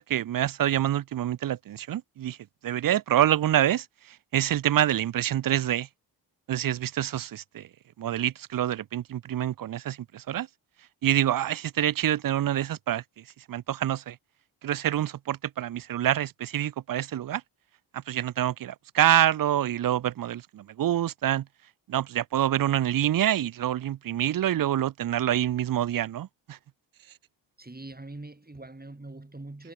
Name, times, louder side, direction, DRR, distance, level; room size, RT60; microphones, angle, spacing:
voice 1, 0.0-2.4 2.6-3.9 4.3-5.9 6.5-7.7 8.0-10.5 11.0-13.0 13.5-14.2 14.6-17.4 17.9-21.4 21.9-26.6, right 12 dB, 45° right, 0.6 m, -26 dB
voice 2, 27.6-29.7, right 2 dB, 20° right, 4.9 m, -43 dB
hypercardioid pair, 45°, 50 cm